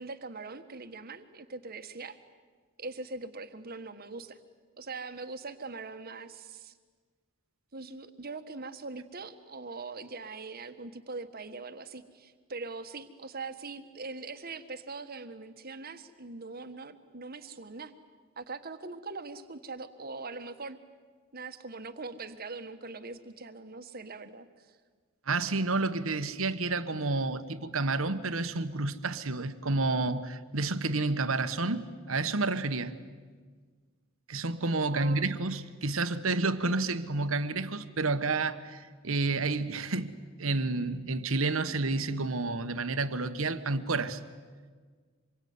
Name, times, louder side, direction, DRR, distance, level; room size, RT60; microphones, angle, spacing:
voice 1, 0.0-2.2 2.8-4.4 4.8-6.7 7.7-17.9 18.4-20.8 21.3-24.8 34.9-35.4, right 3 dB, 45° right, 1.5 m, -42 dB
voice 2, 25.3-32.9 34.3-44.2, right 3 dB, 75° right, 1.3 m, -30 dB
26.5 x 22.5 x 9.6 m
head